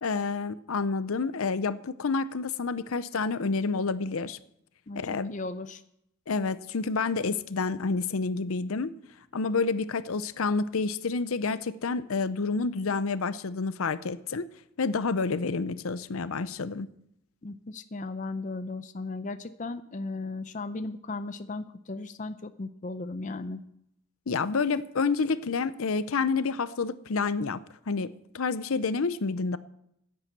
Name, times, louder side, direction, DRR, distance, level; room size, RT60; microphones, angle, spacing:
voice 1, 0.0-4.4 5.0-5.3 6.3-8.9 9.3-14.5 14.8-16.9 24.3-27.6 27.9-29.6, left 4 dB, 75° left, 14 dB, 0.6 m, -29 dB
voice 2, 5.3-5.8 17.4-23.6, left 3 dB, 35° left, 10 dB, 0.5 m, -36 dB
10.5 x 8.9 x 8.1 m, 0.76 s
head